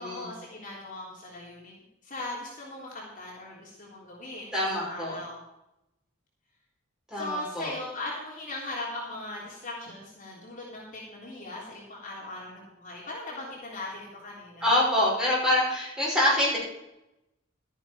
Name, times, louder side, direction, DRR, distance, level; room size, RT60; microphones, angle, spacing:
voice 1, 0.0-5.4 7.1-14.7, left 2 dB, 40° left, -4 dB, 3.5 m, -39 dB
voice 2, 4.5-5.2 7.1-7.7 14.6-16.6, left 1 dB, 5° right, -6 dB, 5.8 m, -25 dB
13.0 x 10.0 x 5.1 m, 0.88 s
head